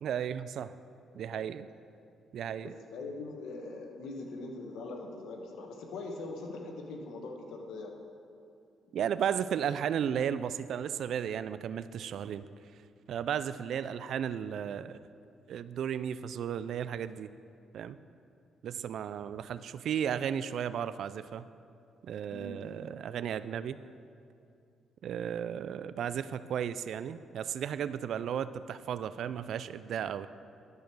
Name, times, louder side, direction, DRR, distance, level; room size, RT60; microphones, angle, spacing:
voice 1, 0.0-0.8 1.2-1.7 2.3-2.7 8.9-12.5 13.1-15.0 15.5-17.3 17.7-18.0 18.6-21.4 22.0-23.8 25.0-30.3, right 8 dB, 70° right, 14 dB, 0.3 m, -34 dB
voice 2, 2.6-8.0 22.3-22.6, left 2 dB, 80° left, 2 dB, 1.3 m, -42 dB
12.0 x 5.1 x 6.1 m, 2.5 s
cardioid pair, 90°, 0 cm